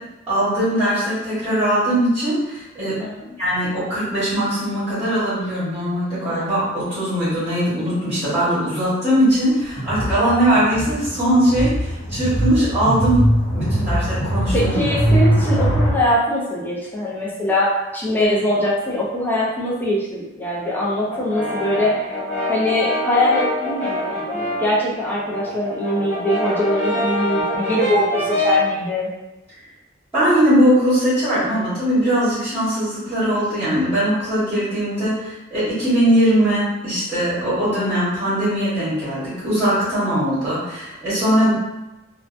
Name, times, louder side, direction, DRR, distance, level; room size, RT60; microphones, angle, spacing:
voice 1, 0.3-3.0 3.4-13.2 13.5-14.7 30.1-41.5, right 1 dB, 10° right, -13 dB, 1.1 m, -20 dB
sound 1, 9.8-15.9, equal, 85° left, 0.8 m, -21 dB
voice 2, 14.5-22.2 22.5-29.1, left 1 dB, 10° left, -6 dB, 0.5 m, -22 dB
Brass instrument, 21.1-24.7 25.1-28.7, left 1 dB, 35° left, 0.9 m, -25 dB
2.6 x 2.2 x 2.5 m, 0.98 s
head